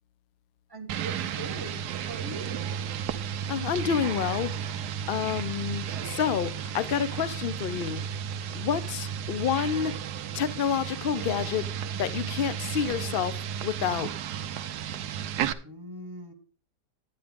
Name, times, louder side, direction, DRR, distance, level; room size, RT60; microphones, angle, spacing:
voice 1, 0.7-2.6 15.6-16.3, right 2 dB, 15° right, 1.4 m, -41 dB
sound 1, 0.9-15.5, right 8 dB, 80° right, 1.2 m, -33 dB
voice 2, 3.5-4.5 5.1-8.0 8.5-9.9 10.3-11.7 12.0-13.4 13.6-14.1, left 8 dB, 70° left, 0.5 m, -28 dB
10.5 x 10.0 x 3.6 m
omnidirectional pair, 1.7 m